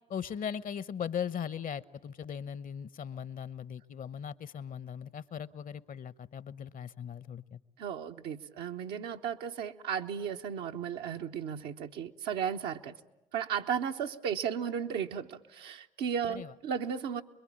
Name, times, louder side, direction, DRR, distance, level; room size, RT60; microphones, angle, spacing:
voice 1, 0.1-7.6 16.3-16.5, left 8 dB, 50° left, 18 dB, 1.0 m, -39 dB
voice 2, 7.8-12.9 13.3-17.2, right 8 dB, 70° right, 4 dB, 1.1 m, -35 dB
25.5 x 22.0 x 8.9 m, 0.95 s
hypercardioid pair, 45°, 18 cm